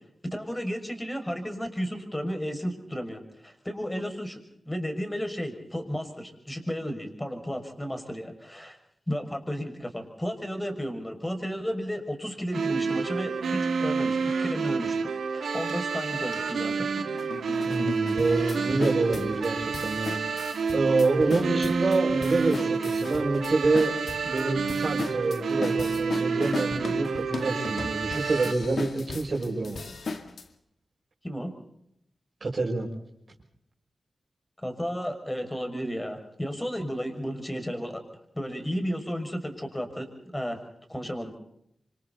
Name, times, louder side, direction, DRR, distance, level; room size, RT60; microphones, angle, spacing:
voice 1, 0.3-4.4 4.7-8.8 9.1-15.0 15.3-16.9 31.2-31.5 34.6-38.0 38.3-40.6 40.9-41.4, equal, 15° left, 5 dB, 6.2 m, -33 dB
sound 1, 12.5-28.5, right 5 dB, 85° right, 2.5 m, -29 dB
sound 2, 15.7-15.8 16.3-16.4 17.0-30.4, left 4 dB, 70° left, 2.1 m, -37 dB
voice 2, 17.7-20.2 20.7-24.0 24.3-29.8 32.4-32.9, right 3 dB, 55° right, -2 dB, 5.9 m, -27 dB
27.5 x 25.5 x 4.1 m, 0.75 s
cardioid pair, 45°, 0 cm